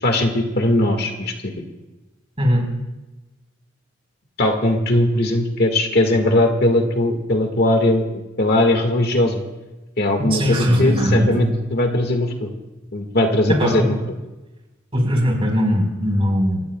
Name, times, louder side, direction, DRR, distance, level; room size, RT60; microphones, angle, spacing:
voice 1, 0.0-1.5 4.4-9.4 10.0-12.5 12.9-13.8, left 1 dB, 50° left, 4 dB, 1.8 m, -19 dB
voice 2, 2.4-2.7 10.3-11.5 13.5-13.9 14.9-16.6, equal, 30° right, 1 dB, 4.4 m, -19 dB
28.5 x 16.5 x 2.3 m, 1.1 s
head